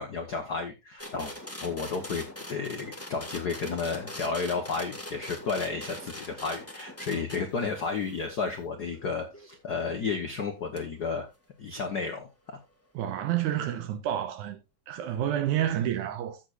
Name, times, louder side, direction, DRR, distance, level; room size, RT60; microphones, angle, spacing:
voice 1, 0.0-1.3 1.6-11.3 11.6-12.3, left 4 dB, 80° left, 0.8 m, -32 dB
sound 1, 1.0-9.6 10.8-10.9, left 1 dB, 25° left, 0.3 m, -42 dB
voice 2, 12.9-14.6 14.9-16.4, right 11 dB, 85° right, 2.3 m, -29 dB
13.0 x 7.6 x 2.4 m
omnidirectional pair, 3.5 m